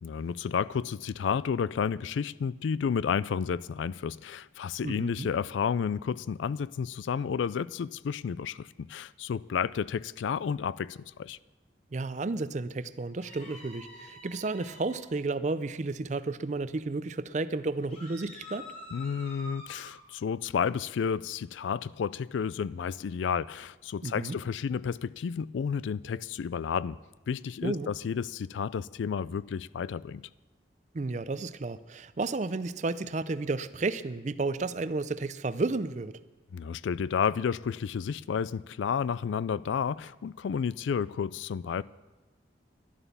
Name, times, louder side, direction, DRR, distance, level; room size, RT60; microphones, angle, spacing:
voice 1, 0.0-11.4 18.9-27.0 27.3-30.2 36.5-41.8, left 6 dB, 80° left, 0.3 m, -31 dB
voice 2, 4.8-5.3 11.9-18.7 24.0-24.4 27.6-27.9 30.9-36.2, right 3 dB, 40° right, 0.4 m, -32 dB
sound 1, 13.2-15.0 17.9-19.9, left 2 dB, 35° left, 4.3 m, -47 dB
11.0 x 11.0 x 6.8 m
head